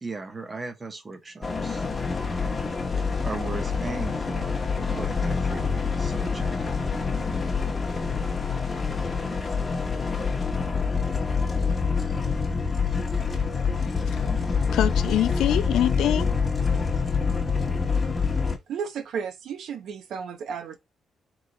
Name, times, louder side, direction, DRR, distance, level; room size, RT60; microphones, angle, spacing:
voice 1, 0.0-1.9 2.2-2.4 3.2-6.7, right 3 dB, 20° right, 0.8 m, -37 dB
sound 1, 1.4-18.6, left 5 dB, 20° left, 0.9 m, -26 dB
voice 2, 13.6-14.4 14.7-16.3, left 11 dB, 85° left, 0.4 m, -26 dB
voice 3, 18.7-20.8, right 6 dB, 70° right, 0.8 m, -33 dB
3.6 x 3.1 x 3.9 m
cardioid pair, 150°, 0 cm